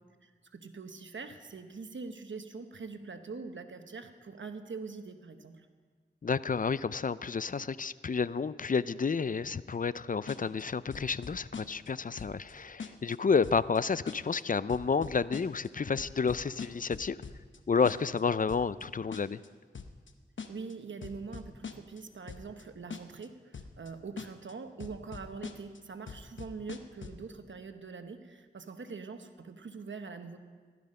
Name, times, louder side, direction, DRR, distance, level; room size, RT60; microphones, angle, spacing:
voice 1, 0.2-5.7 20.5-30.4, right 4 dB, 90° right, 8 dB, 1.0 m, -43 dB
voice 2, 6.2-17.2 17.7-19.4, left 5 dB, 45° left, 17 dB, 0.4 m, -30 dB
sound 1, 10.3-10.6 10.9-11.9 12.2-12.5 12.8-13.2 13.4-13.8 14.1-14.4 14.7-15.7 16.0-17.6 17.8-18.2 18.5-18.8 19.1-19.5 19.7-20.1 20.4-20.7 21.0-22.0 22.3-22.6 22.9-23.3 23.5-23.9 24.2-24.5 24.8-25.8 26.1-27.2, left 5 dB, 90° left, 0.8 m, -43 dB
16.0 x 12.5 x 5.4 m, 1.5 s
wide cardioid pair, 50°, 19 cm